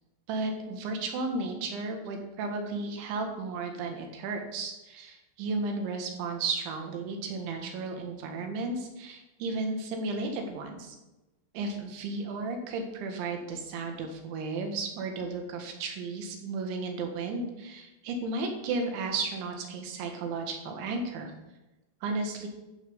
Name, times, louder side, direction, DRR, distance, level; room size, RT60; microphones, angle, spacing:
voice 1, 0.3-11.0 11.5-21.3 22.0-22.5, right 3 dB, 80° right, 3 dB, 4.0 m, -34 dB
13.0 x 5.9 x 7.0 m, 1.0 s
omnidirectional pair, 5.3 m